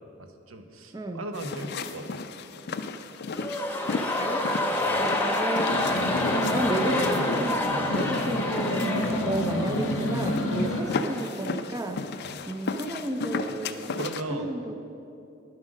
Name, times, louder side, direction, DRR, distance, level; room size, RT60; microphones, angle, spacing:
voice 1, 0.2-2.2 4.8-5.1 9.4-9.5 10.7-10.8 12.2-12.4 14.0-14.5, right 2 dB, 85° right, 6 dB, 0.9 m, -38 dB
sound 1, 1.3-14.2, left 4 dB, 55° left, 0.4 m, -35 dB
sound 2, 3.3-11.4 11.7-11.8, left 1 dB, 10° left, 0.8 m, -29 dB
voice 2, 5.0-6.2 6.5-14.0 14.3-14.8, right 1 dB, 20° right, 6 dB, 0.5 m, -33 dB
sound 3, 5.7-10.8, left 1 dB, 90° left, 1.1 m, -29 dB
10.0 x 7.5 x 6.3 m, 2.6 s
head